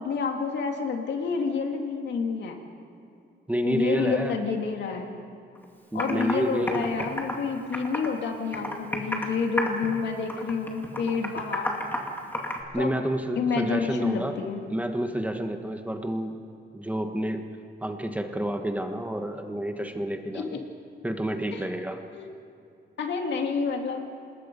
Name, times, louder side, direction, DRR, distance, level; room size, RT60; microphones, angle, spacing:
voice 1, 0.0-2.6 3.6-5.2 5.9-11.8 12.8-12.9 13.4-14.6 20.3-20.6 21.5-21.6 22.1-22.3 23.0-24.1, left 5 dB, 75° left, 3 dB, 2.5 m, -29 dB
voice 2, 3.5-4.3 5.9-7.1 12.7-14.4 14.7-16.4 16.7-17.4 17.8-20.6 21.0-22.0, right 1 dB, 10° right, 5 dB, 1.3 m, -29 dB
Computer keyboard, 5.5-5.6 6.0-6.3 6.7-8.2 8.5-9.3 9.6-10.0 10.3-12.6, left 1 dB, 10° left, 2.4 m, -31 dB
27.0 x 20.5 x 5.4 m, 2.6 s
wide cardioid pair, 135°, 18 cm